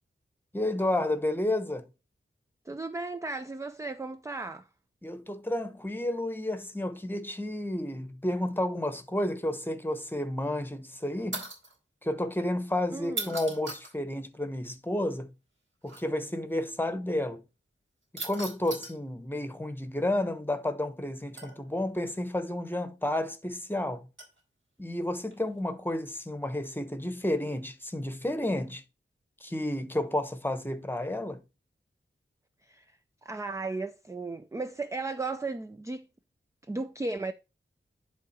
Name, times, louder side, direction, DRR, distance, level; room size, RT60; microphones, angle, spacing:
voice 1, 0.5-1.8 5.0-11.4 12.0-15.3 15.8-17.4 18.2-24.1 24.8-28.8 29.4-31.4, left 1 dB, 10° left, 1.0 m, -31 dB
voice 2, 2.7-4.7 12.9-13.4 32.6-36.1 36.6-37.3, right 3 dB, 15° right, 0.4 m, -35 dB
sound 1, 11.3-11.8 13.0-13.9 15.9-16.0 18.2-19.0 21.4-21.8 24.2-24.4 25.3-25.6, right 2 dB, 65° right, 3.8 m, -38 dB
10.5 x 3.9 x 4.2 m
wide cardioid pair, 95°, 21 cm